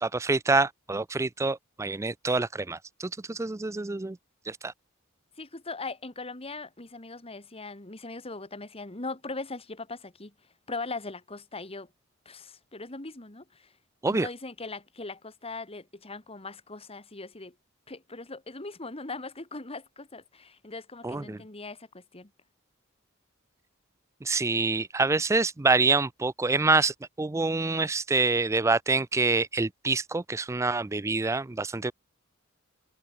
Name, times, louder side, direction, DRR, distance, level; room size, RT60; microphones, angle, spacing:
voice 1, 0.0-4.2 4.5-4.7 14.0-14.3 21.0-21.4 24.2-31.9, right 3 dB, 15° right, 0.4 m, -26 dB
voice 2, 5.4-10.3 10.7-11.9 12.3-13.7 14.1-17.5 17.9-22.3, left 3 dB, 30° left, 2.2 m, -40 dB
head